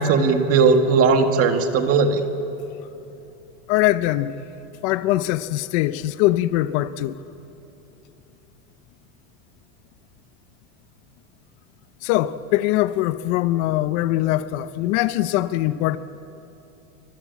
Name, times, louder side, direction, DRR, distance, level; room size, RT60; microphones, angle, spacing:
voice 1, 0.0-2.2, right 4 dB, 35° right, 1.8 m, -18 dB
voice 2, 3.7-4.4 4.8-7.2 12.0-16.0, left 15 dB, 55° left, 0.9 m, -22 dB
28.0 x 25.0 x 8.4 m
cardioid pair, 175°, 42 cm